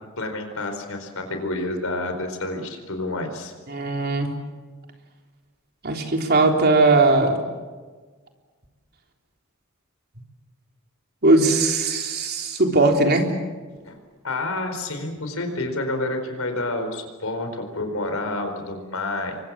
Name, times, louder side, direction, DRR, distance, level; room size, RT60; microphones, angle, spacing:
voice 1, 0.2-3.5 13.8-14.0 14.2-19.4, left 2 dB, 80° left, 6 dB, 4.5 m, -29 dB
voice 2, 3.7-4.3 5.8-7.4 11.2-13.3, right 2 dB, 50° right, 3 dB, 3.6 m, -19 dB
29.0 x 24.0 x 7.5 m, 1.4 s
head